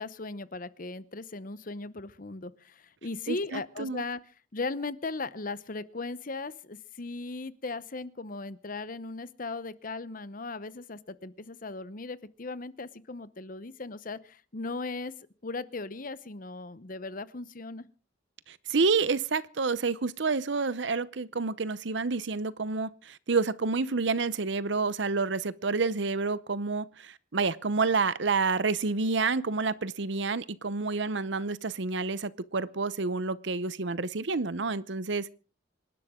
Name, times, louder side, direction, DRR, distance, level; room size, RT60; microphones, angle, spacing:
voice 1, 0.0-4.2 4.5-15.1 15.4-17.9, left 3 dB, 45° left, 0.8 m, -37 dB
voice 2, 3.3-4.0 18.5-35.3, right 4 dB, 65° right, 0.8 m, -29 dB
26.5 x 12.0 x 3.7 m
head